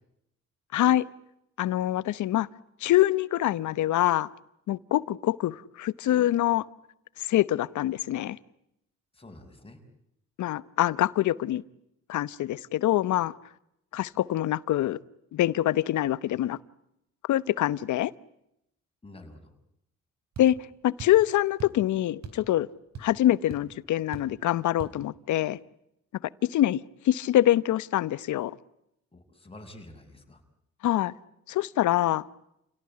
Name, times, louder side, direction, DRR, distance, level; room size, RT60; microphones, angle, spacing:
voice 1, 0.7-1.1 1.6-2.5 2.8-4.3 4.7-6.6 7.2-8.4 10.4-11.6 12.1-13.3 13.9-15.0 15.3-16.6 17.3-18.1 20.4-20.6 20.8-22.7 23.0-25.6 26.4-28.6 30.8-31.1 31.5-32.2, left 13 dB, 75° left, 18 dB, 0.9 m, -25 dB
voice 2, 9.1-9.8 19.0-19.5 29.1-30.4, left 1 dB, 20° left, 4 dB, 5.9 m, -48 dB
sound 1, 20.3-20.5 21.0-21.2 21.6-21.8 22.2-22.5 22.7-23.2 23.5-23.6 24.1-24.4 24.8-25.0, right 5 dB, 60° right, 4.2 m, -41 dB
29.5 x 17.5 x 9.8 m, 0.82 s
cardioid pair, 90°, 30 cm